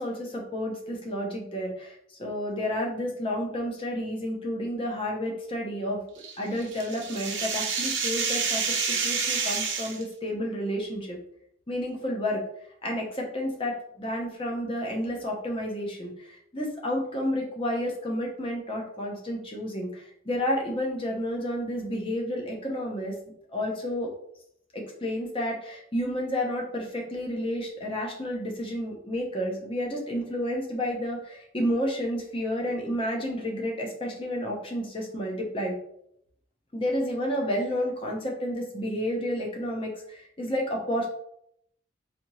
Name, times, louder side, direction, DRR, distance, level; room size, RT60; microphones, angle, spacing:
voice 1, 0.0-1.9 2.2-6.0 6.4-11.2 11.7-12.4 12.8-16.1 16.5-23.2 23.5-24.1 24.7-35.7 36.7-41.1, equal, 25° left, 0 dB, 0.8 m, -30 dB
sound 1, 6.2-10.0, right 5 dB, 65° right, 0.9 m, -28 dB
4.1 x 2.8 x 3.0 m, 0.72 s
head